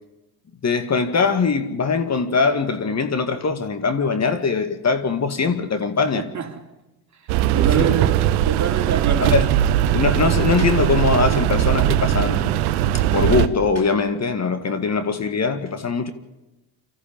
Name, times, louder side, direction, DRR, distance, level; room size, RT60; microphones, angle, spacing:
voice 1, 0.6-6.2 7.8-7.9 9.2-9.5 9.9-12.6 12.9-16.1, left 4 dB, 35° left, 2.0 m, -21 dB
voice 2, 6.1-6.7 7.1-9.3, right 7 dB, 40° right, 3.1 m, -26 dB
sound 1, 7.3-13.5, right 12 dB, 90° right, 1.1 m, -19 dB
25.5 x 14.0 x 9.0 m
supercardioid pair, 75°, 44 cm